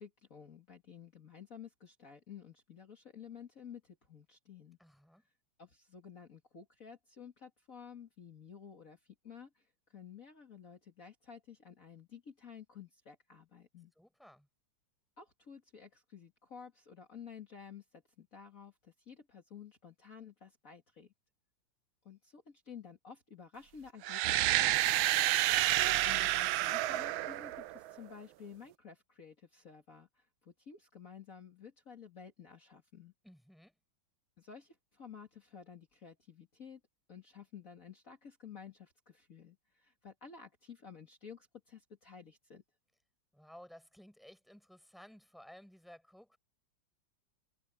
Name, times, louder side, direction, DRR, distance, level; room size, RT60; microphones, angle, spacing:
voice 1, 0.0-4.8 5.6-13.9 15.2-21.1 22.0-24.7 26.0-33.1 34.4-36.8 37.1-42.6, left 7 dB, 45° left, 2.6 m, -52 dB
voice 2, 4.8-5.2 14.0-14.5 24.8-25.3 33.2-33.7 43.3-46.4, equal, ahead, 5.2 m, -56 dB
sound 1, 24.0-28.0, right 15 dB, 90° right, 1.4 m, -29 dB
omnidirectional pair, 2.1 m